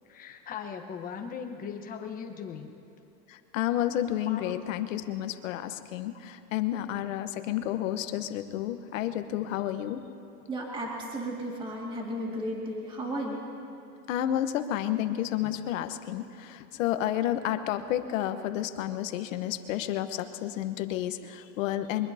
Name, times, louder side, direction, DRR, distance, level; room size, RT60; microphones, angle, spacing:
voice 1, 0.1-2.7 4.3-4.5, left 7 dB, 20° left, 3 dB, 1.2 m, -39 dB
voice 2, 3.3-10.0 14.1-22.1, left 12 dB, 55° left, 9 dB, 1.1 m, -31 dB
voice 3, 10.5-13.4, right 1 dB, 10° right, -2 dB, 2.2 m, -34 dB
23.5 x 20.5 x 2.8 m, 2.9 s
supercardioid pair, 150°, 47 cm